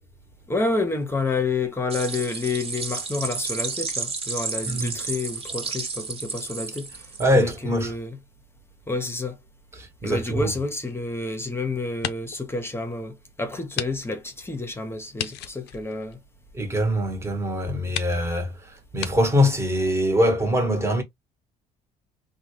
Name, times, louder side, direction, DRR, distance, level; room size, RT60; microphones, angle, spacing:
voice 1, 0.5-8.2 8.9-9.4 10.0-16.2, left 3 dB, 15° left, 0.9 m, -29 dB
sound 1, 1.9-7.4, right 4 dB, 35° right, 1.2 m, -32 dB
voice 2, 7.2-7.9 9.8-10.5 16.5-21.0, equal, 15° right, 1.2 m, -23 dB
sound 2, 10.5-11.5 11.9-12.5 12.9-13.0 13.7-13.9 14.2-14.3 15.1-16.7 17.4-17.5 17.9-18.2 19.0-19.1, left 11 dB, 80° left, 0.5 m, -34 dB
3.7 x 2.3 x 3.1 m
cardioid pair, 110°, 17 cm